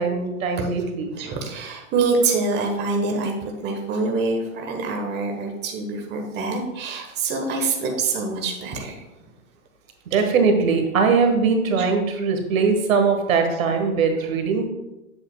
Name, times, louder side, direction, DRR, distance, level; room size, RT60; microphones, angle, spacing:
voice 1, 0.0-1.1 10.1-14.7, right 5 dB, 75° right, 5 dB, 1.5 m, -21 dB
voice 2, 1.1-9.0 11.8-11.9, right 3 dB, 25° right, 2 dB, 1.2 m, -25 dB
8.4 x 7.9 x 2.3 m, 0.95 s
hypercardioid pair, 125°, 41 cm